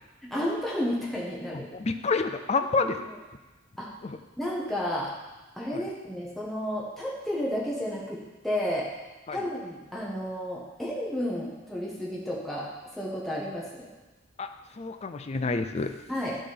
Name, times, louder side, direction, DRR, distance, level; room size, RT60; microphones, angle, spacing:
voice 1, 0.3-1.7 2.8-2.9 3.8-3.9 4.4-5.1 5.6-8.9 9.3-12.7 13.0-13.9 16.1-16.4, equal, ahead, -6 dB, 1.3 m, -32 dB
voice 2, 1.5-3.0 4.0-4.2 5.7-5.8 9.3-9.4 14.4-14.5 14.8-15.9, left 4 dB, 35° left, 7 dB, 0.5 m, -28 dB
10.5 x 3.8 x 5.1 m, 1.1 s
head